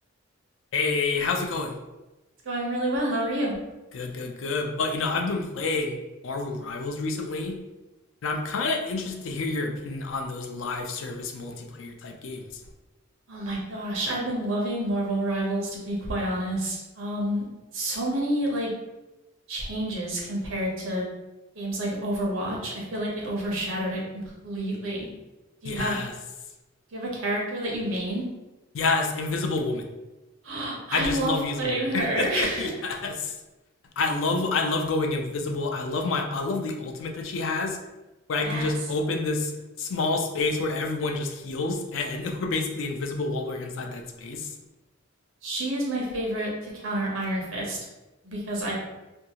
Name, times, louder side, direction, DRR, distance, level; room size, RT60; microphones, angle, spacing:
voice 1, 0.7-1.8 3.9-7.6 8.2-12.6 25.6-26.1 28.7-29.8 30.9-33.3 34.0-37.8 38.3-39.5 39.8-44.5, left 3 dB, 75° left, 3 dB, 0.4 m, -28 dB
voice 2, 2.4-3.5 13.3-17.4 17.7-18.7 19.5-21.1 21.5-24.0 24.4-25.1 25.6-26.0 26.9-28.2 30.4-32.7 38.4-38.7 45.4-47.8 48.2-48.7, right 1 dB, 90° right, -3 dB, 0.8 m, -29 dB
2.6 x 2.3 x 2.8 m, 1.1 s
head